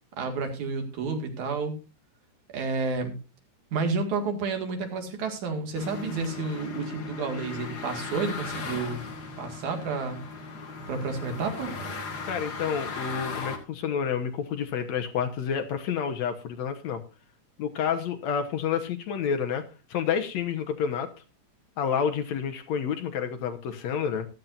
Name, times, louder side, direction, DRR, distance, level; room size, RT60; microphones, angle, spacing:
voice 1, 0.2-1.7 2.5-3.1 3.7-9.0 9.4-10.2 10.9-11.7, right 4 dB, 70° right, 5 dB, 3.4 m, -30 dB
sound 1, 5.7-13.6, left 4 dB, 40° left, 1.8 m, -37 dB
voice 2, 12.3-17.0 17.6-19.6 19.9-21.1 21.8-24.3, left 7 dB, 65° left, 7 dB, 2.2 m, -29 dB
15.0 x 12.5 x 2.6 m, 0.30 s
omnidirectional pair, 3.6 m